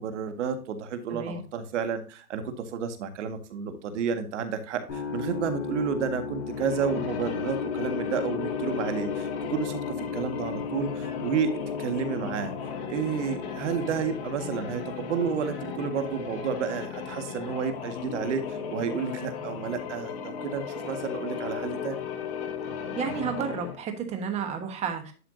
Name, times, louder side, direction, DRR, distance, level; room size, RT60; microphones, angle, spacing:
voice 1, 0.0-9.8 10.1-12.5 12.9-22.0, right 6 dB, 50° right, 8 dB, 1.8 m, -31 dB
voice 2, 1.1-1.4 23.0-25.1, right 6 dB, 15° right, 6 dB, 1.2 m, -31 dB
sound 1, 4.9-20.8, left 5 dB, 55° left, 4.9 m, -37 dB
sound 2, 6.4-23.9, left 7 dB, 40° left, 1.6 m, -36 dB
11.5 x 5.7 x 2.7 m, 0.37 s
hypercardioid pair, 150°, 45 cm